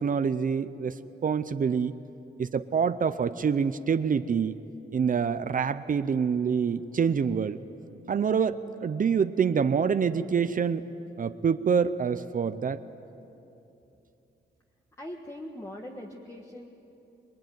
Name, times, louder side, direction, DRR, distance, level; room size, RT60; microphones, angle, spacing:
voice 1, 0.0-1.9 2.4-4.6 4.9-7.6 8.1-10.8 11.2-12.8, right 6 dB, 45° right, 12 dB, 0.6 m, -26 dB
voice 2, 15.0-16.7, left 1 dB, 15° left, 1 dB, 1.5 m, -41 dB
27.0 x 21.5 x 9.3 m, 2.9 s
wide cardioid pair, 170°, 19 cm